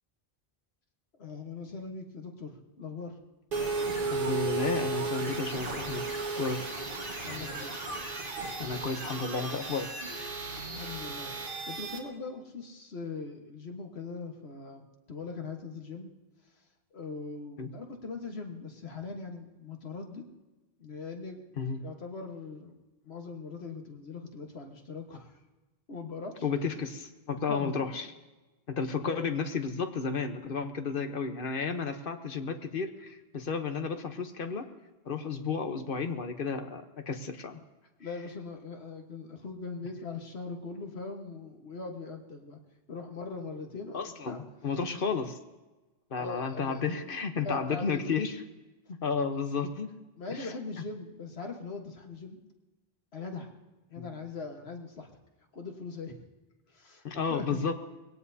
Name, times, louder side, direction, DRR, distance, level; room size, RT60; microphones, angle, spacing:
voice 1, 1.2-3.2 7.2-7.7 10.7-11.3 11.7-16.1 16.9-20.3 20.8-21.4 21.8-22.8 23.0-25.4 25.9-26.4 27.5-27.8 29.0-29.3 38.0-42.6 42.9-44.4 46.1-48.2 50.2-52.4 53.1-53.5 53.9-55.1 55.5-56.2 56.7-57.6, left 4 dB, 85° left, 3 dB, 1.7 m, -41 dB
sound 1, 3.5-12.0, right 3 dB, 55° right, 1.9 m, -34 dB
voice 2, 4.1-6.0 6.4-6.6 8.6-9.9 10.1-10.4 17.6-17.7 21.6-21.8 26.4-28.1 28.7-34.7 35.0-37.6 43.9-45.4 46.1-48.4 49.0-49.9 50.3-50.5 54.0-54.1 57.0-57.7, left 5 dB, 60° left, 7 dB, 1.1 m, -32 dB
21.5 x 17.5 x 2.8 m, 1.1 s
omnidirectional pair, 1.0 m